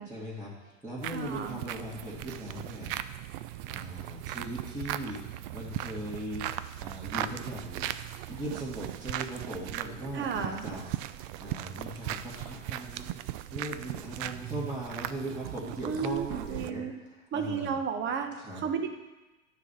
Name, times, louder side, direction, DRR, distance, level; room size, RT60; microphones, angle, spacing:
voice 1, 0.0-2.9 3.2-3.4 3.7-7.9 8.3-13.2 13.5-17.8 18.4-18.6, right 1 dB, 5° right, -10 dB, 2.2 m, -39 dB
sound 1, 1.0-16.7, right 13 dB, 45° right, 0.5 m, -38 dB
voice 2, 1.1-1.6 10.1-10.6 15.8-16.9 17.3-18.9, right 6 dB, 30° right, 6 dB, 1.0 m, -33 dB
9.6 x 4.4 x 6.9 m, 1.1 s
hypercardioid pair, 105°, 38 cm